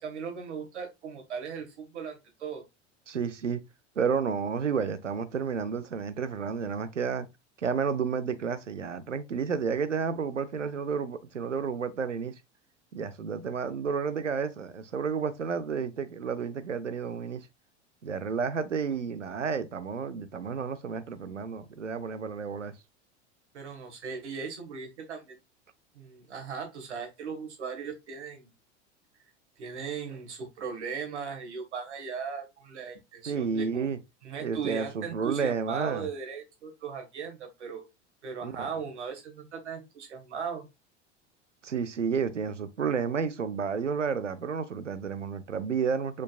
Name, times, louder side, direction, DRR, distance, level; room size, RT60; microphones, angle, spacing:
voice 1, 0.0-2.6 23.5-25.4 26.0-28.5 29.6-33.9 34.2-37.8 38.2-40.6, right 6 dB, 70° right, 1.7 m, -38 dB
voice 2, 3.1-3.6 4.0-7.3 7.6-12.3 12.9-17.5 18.0-22.7 33.3-34.0 34.4-36.1 38.4-38.7 41.6-46.2, right 6 dB, 85° right, 0.7 m, -31 dB
4.8 x 4.6 x 2.4 m
figure-of-eight pair, 80°, 36 cm